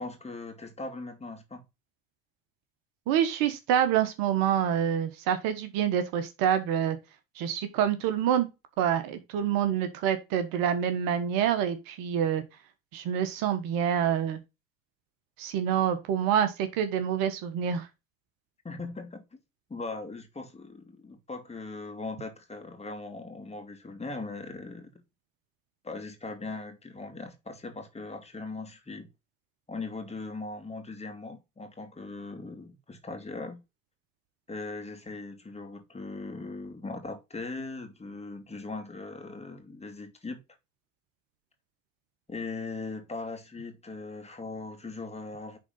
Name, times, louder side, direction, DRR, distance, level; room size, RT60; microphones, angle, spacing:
voice 1, 0.0-1.6 18.6-19.4 19.7-24.9 25.8-29.1 29.7-33.6 34.5-40.4 42.3-45.6, left 3 dB, 15° left, 2.3 m, -39 dB
voice 2, 3.1-7.0 7.4-8.5 8.8-12.4 12.9-14.4 15.4-17.9, right 9 dB, 60° right, 1.3 m, -27 dB
10.0 x 3.9 x 3.9 m
hypercardioid pair, 75°, 40 cm